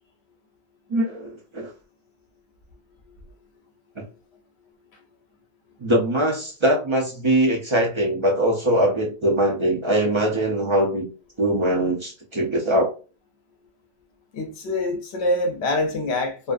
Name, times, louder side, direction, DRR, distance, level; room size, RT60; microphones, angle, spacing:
voice 1, 0.9-1.7 4.0-4.1 5.8-11.1 11.4-12.9, right 1 dB, 50° right, 0.3 m, -22 dB
voice 2, 14.3-16.5, left 2 dB, 70° left, 0.8 m, -25 dB
2.5 x 2.3 x 2.4 m
omnidirectional pair, 1.2 m